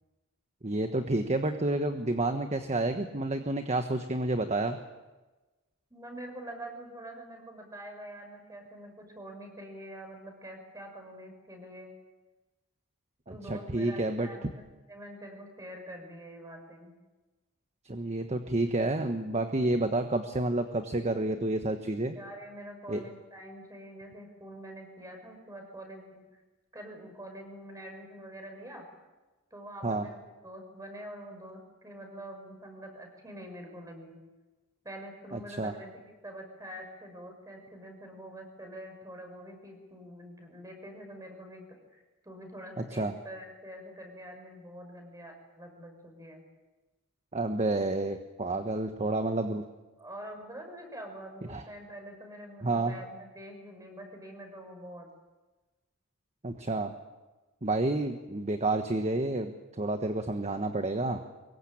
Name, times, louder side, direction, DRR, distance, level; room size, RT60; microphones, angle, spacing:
voice 1, 0.6-4.8 13.3-14.3 17.8-22.2 22.9-23.0 29.8-30.0 35.3-35.7 42.9-43.1 47.3-49.6 51.5-51.6 52.6-52.9 56.4-56.9 57.6-61.2, right 2 dB, 30° right, 7 dB, 1.3 m, -30 dB
voice 2, 5.9-11.9 13.3-17.0 22.1-26.2 26.7-28.8 29.5-30.2 30.4-34.2 34.8-41.7 41.9-46.4 50.0-55.1, right 1 dB, 15° right, 4 dB, 6.1 m, -45 dB
24.5 x 22.0 x 8.7 m, 1.2 s
head